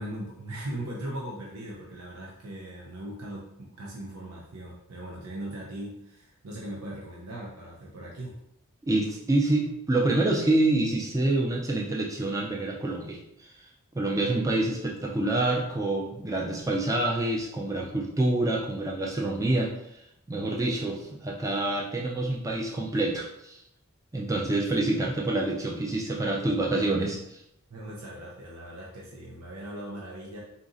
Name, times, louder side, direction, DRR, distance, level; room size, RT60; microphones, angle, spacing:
voice 1, 0.0-8.4 27.7-30.4, right 1 dB, 75° right, -3 dB, 0.7 m, -39 dB
voice 2, 8.9-13.5 13.9-19.7 20.3-23.6 24.1-27.4, right 2 dB, 15° right, -2 dB, 0.4 m, -27 dB
4.0 x 2.5 x 3.8 m, 0.80 s
head